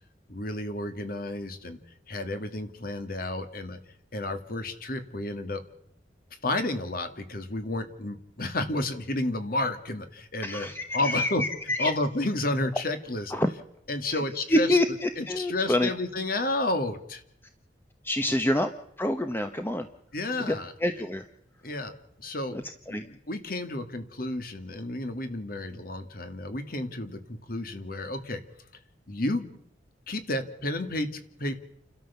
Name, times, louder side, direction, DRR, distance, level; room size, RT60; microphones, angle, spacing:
voice 1, 0.3-1.8 2.1-3.8 4.1-5.6 6.4-11.4 11.8-13.3 13.9-14.8 15.2-17.2 18.3-18.4 20.1-20.7 21.6-22.6 22.9-28.4 29.1-29.6 30.1-31.6, left 2 dB, 55° left, 8 dB, 2.1 m, -31 dB
voice 2, 10.4-11.9 13.3-13.5 14.1-14.2 14.5-15.9 18.0-18.7 19.0-19.9 20.5-20.6 20.8-21.2 22.9-23.0, left 1 dB, 10° left, 7 dB, 1.0 m, -26 dB
29.5 x 13.0 x 7.0 m, 0.77 s
head